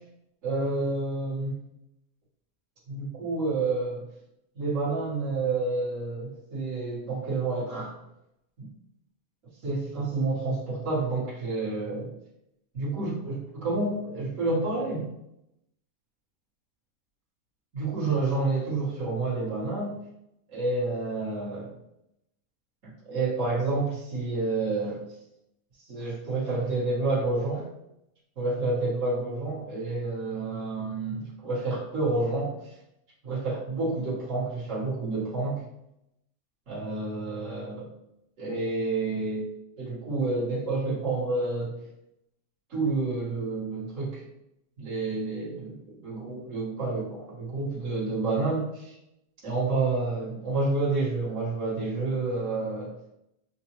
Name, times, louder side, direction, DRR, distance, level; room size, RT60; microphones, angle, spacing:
voice 1, 0.4-1.6 2.9-4.0 4.6-7.9 8.6-8.7 9.6-12.1 12.7-15.1 17.7-19.9 20.5-21.7 23.1-25.0 25.9-27.6 28.4-32.5 33.2-35.6 36.7-37.9 38.4-39.5 39.8-41.8 42.7-44.2 44.8-49.0 49.4-52.9, right 3 dB, 55° right, -7 dB, 1.8 m, -29 dB
5.1 x 2.2 x 3.0 m, 0.82 s
omnidirectional pair, 1.7 m